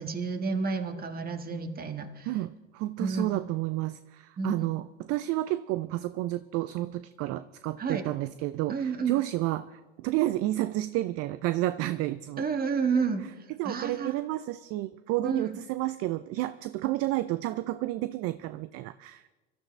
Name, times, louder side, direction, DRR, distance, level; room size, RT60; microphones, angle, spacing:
voice 1, 0.0-2.3 3.0-3.3 4.4-4.7 7.8-8.1 8.7-9.2 12.4-13.2 13.6-14.2 15.2-15.6, right 5 dB, 25° right, 6 dB, 1.7 m, -30 dB
voice 2, 2.2-12.4 13.6-19.3, right 16 dB, 45° right, 14 dB, 0.5 m, -31 dB
23.5 x 13.0 x 3.3 m, 1.2 s
hypercardioid pair, 90°, 35 cm